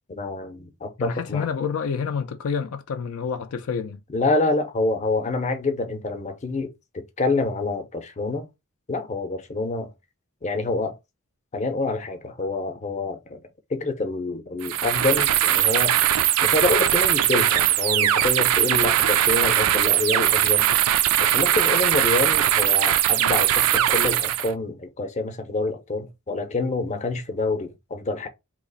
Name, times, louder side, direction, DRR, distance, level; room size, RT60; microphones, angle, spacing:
voice 1, 0.1-1.5 4.1-8.5 8.9-9.9 10.4-11.0 11.5-13.4 13.7-20.7 21.2-28.3, left 3 dB, 35° left, 0.6 m, -27 dB
voice 2, 1.0-4.0, left 6 dB, 70° left, 0.4 m, -28 dB
sound 1, 14.6-24.5, right 12 dB, 80° right, 0.4 m, -20 dB
3.0 x 2.4 x 3.9 m
head